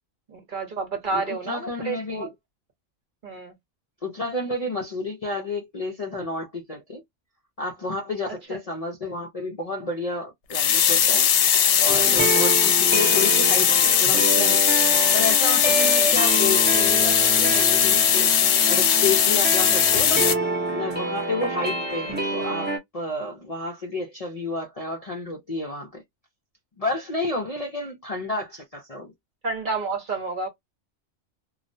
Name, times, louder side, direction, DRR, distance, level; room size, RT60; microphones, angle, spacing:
voice 1, 0.3-2.3 3.2-3.5 8.5-8.6 15.8-16.1 20.2-20.4 29.4-30.5, right 3 dB, 45° right, 0.9 m, -30 dB
voice 2, 1.1-2.3 4.0-7.0 7.6-11.3 11.8-14.6 15.1-20.3 20.7-26.0 26.8-29.1, left 2 dB, 45° left, 0.5 m, -30 dB
sound 1, 10.5-20.3, left 8 dB, 75° left, 0.8 m, -19 dB
sound 2, 11.9-22.8, right 2 dB, 10° right, 0.6 m, -28 dB
2.4 x 2.0 x 2.6 m
omnidirectional pair, 1.2 m